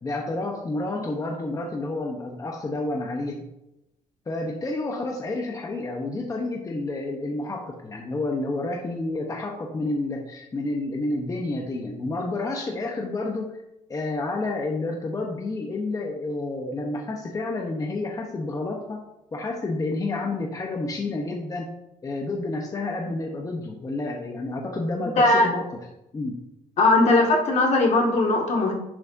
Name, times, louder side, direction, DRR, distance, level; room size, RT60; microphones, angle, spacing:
voice 1, 0.0-3.4 4.3-13.6 13.9-19.0 19.3-21.7 22.0-25.7 26.1-26.4, left 2 dB, 25° left, 1 dB, 1.0 m, -30 dB
voice 2, 25.2-25.5 26.8-28.7, left 2 dB, 55° left, 0 dB, 2.1 m, -19 dB
10.5 x 6.2 x 2.7 m, 0.89 s
cardioid pair, 115°, 14 cm